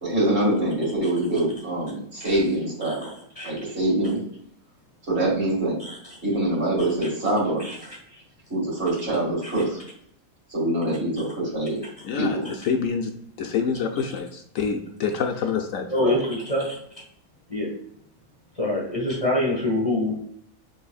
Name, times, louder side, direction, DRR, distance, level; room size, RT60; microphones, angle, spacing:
voice 1, 0.0-3.1 3.4-4.2 5.1-5.7 6.2-7.6 8.5-9.8 10.5-11.8 12.1-12.5 15.9-16.2, right 1 dB, 50° right, -5 dB, 2.4 m, -24 dB
voice 2, 12.0-15.9, left 6 dB, 70° left, 4 dB, 0.9 m, -27 dB
voice 3, 15.9-16.8 17.5-17.7 18.6-20.1, left 1 dB, 25° left, -2 dB, 1.3 m, -25 dB
6.9 x 3.3 x 2.3 m, 0.66 s
omnidirectional pair, 1.5 m